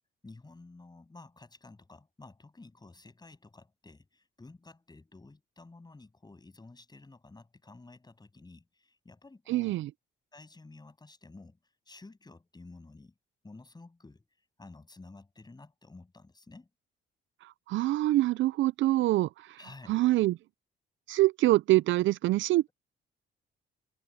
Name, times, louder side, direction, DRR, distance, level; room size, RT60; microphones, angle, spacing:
voice 1, 0.2-9.7 10.3-11.6 11.9-13.1 13.4-14.2 14.6-16.7 19.6-20.0, left 3 dB, 20° left, 7.9 m, -52 dB
voice 2, 9.5-9.9 17.7-19.6 19.9-20.4 21.1-22.7, right 16 dB, 75° right, 0.4 m, -25 dB
cardioid pair, 90°, 20 cm